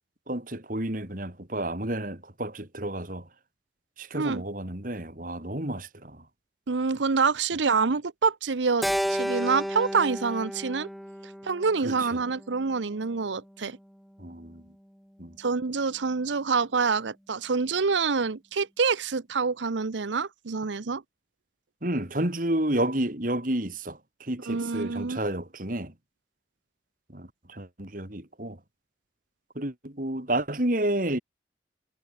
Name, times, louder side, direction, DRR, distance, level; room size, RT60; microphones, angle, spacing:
voice 1, 0.3-3.3 4.0-6.2 11.8-12.2 14.2-14.6 15.2-15.4 21.8-25.9 27.1-28.6 29.5-31.2, right 1 dB, 50° right, 3.2 m, -30 dB
voice 2, 6.7-10.9 11.4-13.8 15.4-21.0 24.5-25.2, right 4 dB, 90° right, 0.8 m, -26 dB
Keyboard (musical), 8.8-13.2, equal, ahead, 1.3 m, -33 dB
head